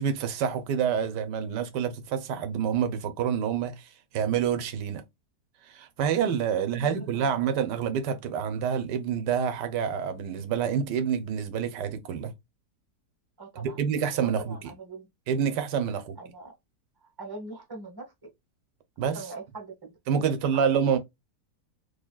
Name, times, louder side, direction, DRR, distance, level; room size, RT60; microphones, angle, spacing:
voice 1, 0.0-5.0 5.6-12.3 13.6-14.6 15.3-16.2 19.0-19.2 20.1-21.0, right 7 dB, 85° right, 1.3 m, -27 dB
voice 2, 6.5-7.5 13.4-13.8 14.2-15.1 16.2-16.5 17.0-18.1 19.1-21.0, right 3 dB, 15° right, 1.2 m, -43 dB
3.9 x 3.2 x 2.3 m
omnidirectional pair, 1.8 m